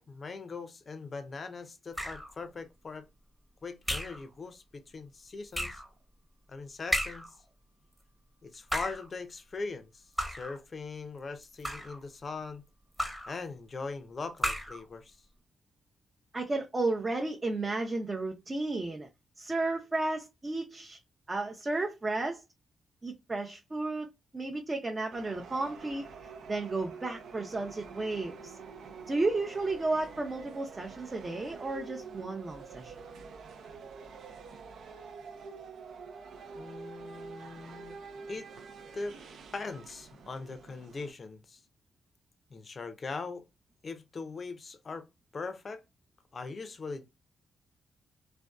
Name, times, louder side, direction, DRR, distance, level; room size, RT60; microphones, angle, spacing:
voice 1, 0.0-3.0 3.6-5.8 6.5-7.3 8.4-12.6 13.3-15.2 36.5-38.0 38.3-38.5 38.9-39.2 39.5-41.6 42.5-43.4 43.8-45.1 45.3-45.8 46.3-47.1, left 4 dB, 45° left, 0.5 m, -40 dB
sound 1, 1.9-2.4 3.9-4.3 5.5-5.9 6.9-7.4 8.5-9.1 10.2-10.6 11.4-12.0 13.0-13.4 14.4-14.8, equal, ahead, 0.8 m, -34 dB
voice 2, 16.3-19.1 19.4-21.0 21.3-22.4 23.0-24.1 24.3-26.0 26.5-28.6 29.1-32.9, right 2 dB, 30° right, 0.6 m, -33 dB
sound 2, 25.1-41.1, right 5 dB, 75° right, 0.5 m, -47 dB
2.5 x 2.2 x 2.2 m
supercardioid pair, 55°, 0 cm